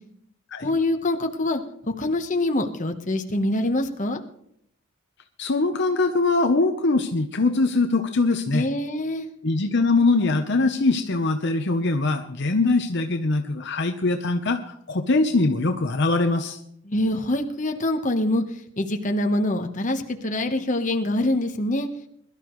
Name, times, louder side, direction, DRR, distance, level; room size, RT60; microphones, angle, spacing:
voice 1, 0.6-4.2 8.5-9.3 16.9-18.4 18.8-21.9, left 1 dB, 35° left, 5 dB, 1.1 m, -25 dB
voice 2, 5.4-8.7 9.4-16.6, left 3 dB, 55° left, 6 dB, 0.8 m, -22 dB
22.0 x 12.5 x 3.1 m, 0.72 s
head